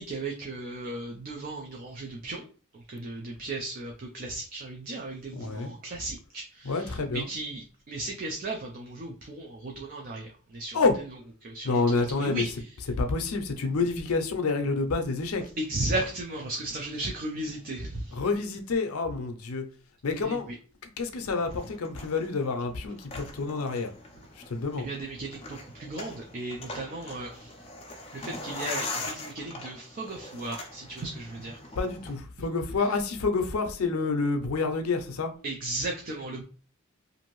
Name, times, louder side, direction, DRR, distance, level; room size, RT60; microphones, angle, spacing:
voice 1, 0.0-2.5 2.7-10.8 11.4-11.8 12.1-12.6 15.6-18.2 20.2-20.6 24.8-27.5 28.1-31.6 35.4-36.4, right 2 dB, 40° right, 0.4 m, -35 dB
voice 2, 5.3-5.7 6.6-7.3 10.7-10.9 11.6-12.5 13.0-15.4 18.1-19.7 20.0-20.5 20.8-23.9 24.4-24.9 31.8-35.3, left 3 dB, 90° left, 0.5 m, -28 dB
sound 1, 21.3-32.2, left 2 dB, 25° left, 0.5 m, -41 dB
2.6 x 2.5 x 3.0 m
head